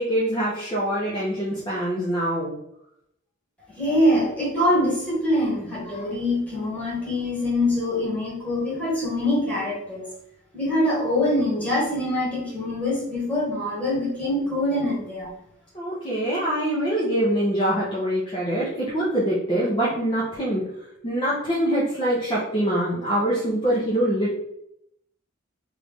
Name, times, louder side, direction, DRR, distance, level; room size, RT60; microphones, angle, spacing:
voice 1, 0.0-2.5 15.7-20.6 21.0-24.4, right 1 dB, 25° left, -7 dB, 0.7 m, -24 dB
voice 2, 3.7-10.1 10.5-15.3, left 1 dB, 5° left, -7 dB, 1.4 m, -24 dB
3.2 x 2.5 x 3.5 m, 0.78 s
head